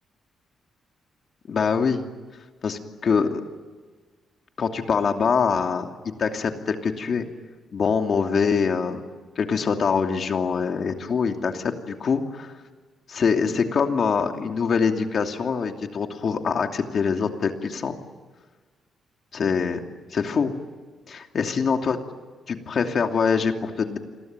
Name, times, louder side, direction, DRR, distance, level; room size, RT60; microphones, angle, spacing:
voice 1, 1.5-2.1 2.6-3.4 4.6-5.9 6.2-7.3 7.7-9.0 9.4-12.5 13.1-18.0 19.3-19.8 20.1-20.5 21.1-22.0 22.5-24.0, left 5 dB, 45° left, 4 dB, 2.8 m, -24 dB
29.5 x 22.0 x 9.1 m, 1.4 s
cardioid pair, 150°, 0 cm